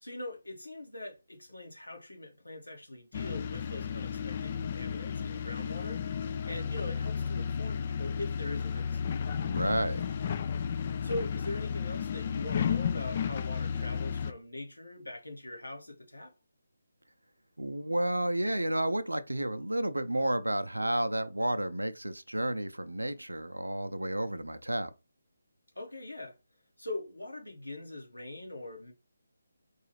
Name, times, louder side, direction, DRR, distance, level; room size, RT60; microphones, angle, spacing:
voice 1, 0.0-6.1 6.5-9.0 11.0-16.3 25.7-26.4 26.8-28.9, left 2 dB, 85° left, 1.3 m, -42 dB
sound 1, 3.1-14.3, left 7 dB, 35° left, 0.3 m, -33 dB
voice 2, 9.5-10.1 17.6-24.9, right 1 dB, 85° right, 0.4 m, -31 dB
4.6 x 2.4 x 3.0 m
figure-of-eight pair, 150°, 0 cm